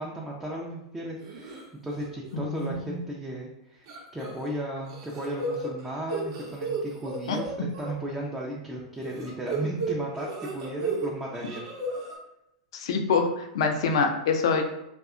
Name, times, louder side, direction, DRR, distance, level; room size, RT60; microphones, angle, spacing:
voice 1, 0.0-11.6, right 1 dB, 10° right, -3 dB, 0.4 m, -35 dB
sound 1, 1.2-1.6 2.0-2.3 2.6-2.7 3.9-4.5 4.8-7.9 9.0-11.1 11.3-12.1, right 3 dB, 60° right, 0.7 m, -34 dB
voice 2, 2.3-3.0 7.3-7.4 12.7-14.6, left 5 dB, 65° left, 5 dB, 0.4 m, -25 dB
2.6 x 2.2 x 2.4 m, 0.86 s
hypercardioid pair, 100°, 3 cm